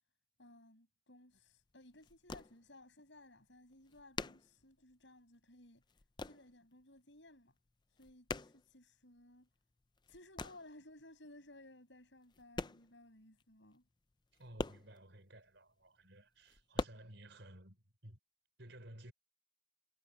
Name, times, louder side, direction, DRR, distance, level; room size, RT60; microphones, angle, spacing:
voice 1, 0.4-5.8 6.2-7.5 7.9-9.5 10.1-13.8, left 1 dB, 65° left, 7.7 m, -59 dB
sound 1, 1.4-1.5 1.7-2.9 3.2-3.3 3.5-5.3 5.6-6.5 6.8-7.4 7.7-9.3 9.7-10.8 11.5-11.6 12.2-13.1 13.4-13.5 13.7-13.8 14.1-15.6 16.0-16.8, left 3 dB, 20° left, 0.5 m, -44 dB
voice 2, 14.3-18.2 18.6-19.1, right 1 dB, 65° right, 4.5 m, -55 dB
head